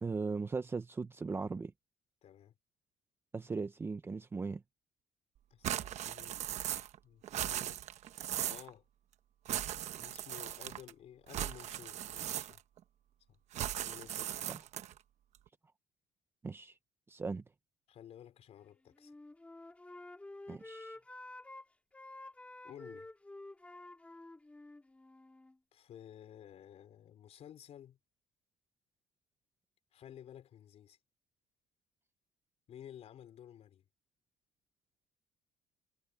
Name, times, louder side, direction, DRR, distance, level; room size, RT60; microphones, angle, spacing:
voice 1, 0.0-1.7 3.3-4.6 14.5-14.6 16.4-16.8 17.1-17.4 20.5-21.0, right 4 dB, 15° right, 0.7 m, -38 dB
voice 2, 2.2-2.5 5.5-6.4 7.0-7.8 8.5-8.9 10.0-12.6 13.3-13.4 13.8-14.5 17.9-19.1 22.6-23.1 25.7-28.0 29.9-31.0 32.7-33.8, left 10 dB, 45° left, 4.2 m, -53 dB
sound 1, 5.6-7.0 7.2-8.7 9.4-10.9 11.3-12.8 13.5-15.0, right 12 dB, 50° right, 1.0 m, -38 dB
Wind instrument woodwind instrument, 18.9-21.6 21.9-25.6, left 2 dB, 10° left, 3.2 m, -50 dB
cardioid pair, 160°, 15 cm